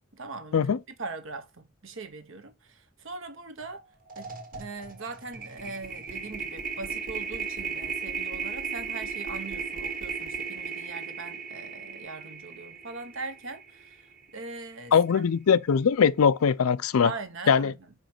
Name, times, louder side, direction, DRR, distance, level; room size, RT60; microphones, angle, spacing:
voice 1, 0.1-0.7 1.0-3.8 4.2-15.3 17.0-17.9, right 3 dB, 65° right, 1.0 m, -41 dB
sound 1, 3.6-3.8 4.1-14.3, right 6 dB, 40° right, 1.7 m, -36 dB
voice 2, 14.9-17.1 17.5-17.7, left 6 dB, 85° left, 0.5 m, -21 dB
5.2 x 5.1 x 4.4 m
head